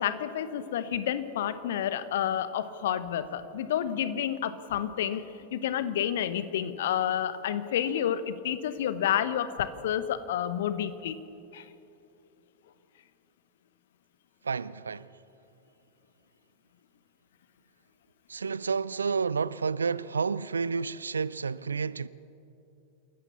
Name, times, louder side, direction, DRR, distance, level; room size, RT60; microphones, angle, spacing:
voice 1, 0.0-5.2 5.5-11.2 11.5-11.6, left 10 dB, 55° left, 1.1 m, -30 dB
voice 2, 14.4-15.1 18.3-22.1, right 5 dB, 75° right, 0.5 m, -30 dB
27.5 x 14.5 x 7.0 m
figure-of-eight pair, 90°, 0 cm